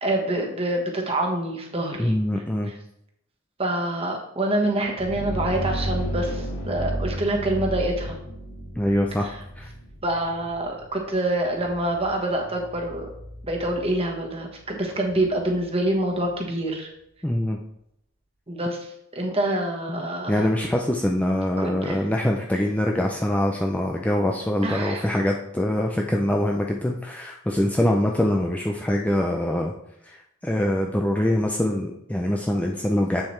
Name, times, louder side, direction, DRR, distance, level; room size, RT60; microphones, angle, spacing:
voice 1, 0.0-2.1 2.6-2.7 3.6-8.2 9.2-9.4 10.0-13.1 13.5-16.9 18.5-20.5 21.6-22.0 24.6-25.0, right 1 dB, 25° right, 1 dB, 1.3 m, -26 dB
voice 2, 2.0-2.7 8.8-9.3 9.6-9.7 17.2-17.6 19.9-29.7 30.0-33.2, left 1 dB, 5° left, 1 dB, 0.4 m, -24 dB
sound 1, 4.7-16.4, right 1 dB, 70° left, 2.0 m, -34 dB
7.7 x 7.2 x 3.2 m, 0.76 s
head